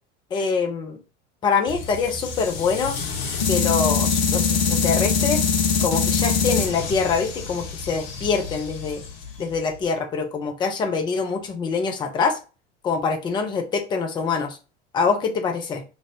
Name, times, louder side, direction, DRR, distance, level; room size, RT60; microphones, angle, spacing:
voice 1, 0.3-1.0 1.4-3.0 3.5-5.4 5.8-9.0 9.4-12.4 12.8-14.6 14.9-15.8, left 5 dB, 15° left, 5 dB, 0.4 m, -24 dB
sound 1, 1.7-9.8, left 5 dB, 55° left, 0.8 m, -24 dB
2.6 x 2.5 x 3.1 m, 0.33 s
figure-of-eight pair, 80°, 35 cm